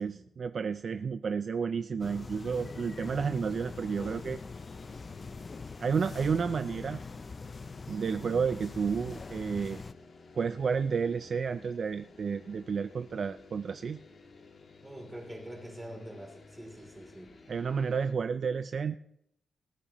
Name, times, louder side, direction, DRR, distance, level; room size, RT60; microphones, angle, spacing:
voice 1, 0.0-4.4 5.8-7.0 7.9-9.8 10.4-14.0 17.5-18.9, right 6 dB, 45° right, 11 dB, 0.4 m, -31 dB
sound 1, 2.0-9.9, left 4 dB, 30° left, 0.4 m, -43 dB
sound 2, 2.5-18.1, left 4 dB, 45° left, 1.6 m, -52 dB
voice 2, 14.8-17.4, right 1 dB, 10° right, 0 dB, 3.0 m, -45 dB
19.0 x 12.5 x 3.0 m, 0.75 s
wide cardioid pair, 160°, 0 cm